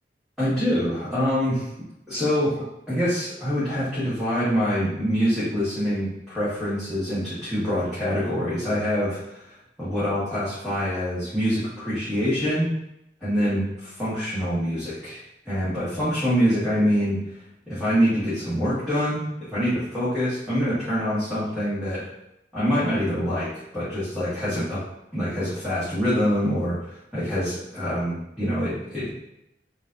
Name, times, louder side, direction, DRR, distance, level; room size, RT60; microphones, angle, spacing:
voice 1, 0.4-1.7 2.1-9.4 9.8-12.7 13.2-17.2 17.7-22.1 22.5-24.8 25.1-26.8 27.1-29.1, equal, ahead, -13 dB, 1.4 m, -25 dB
6.7 x 2.6 x 2.6 m, 0.84 s
head